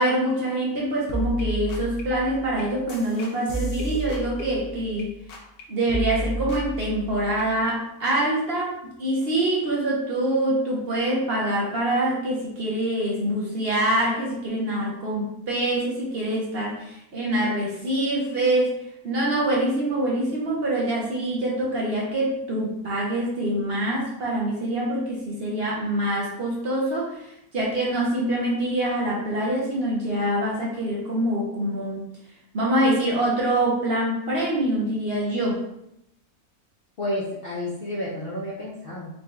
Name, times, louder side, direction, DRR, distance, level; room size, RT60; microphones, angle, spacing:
voice 1, 0.0-5.1 5.7-18.8 19.0-27.3 27.5-32.0 32.5-35.6, right 1 dB, 50° right, -4 dB, 0.9 m, -25 dB
sound 1, 1.1-5.0 5.3-5.6 5.9-7.5, right 1 dB, 85° left, 1.3 m, -32 dB
voice 2, 37.0-39.1, left 1 dB, 55° left, -5 dB, 0.6 m, -30 dB
4.2 x 2.4 x 3.2 m, 0.81 s
omnidirectional pair, 1.6 m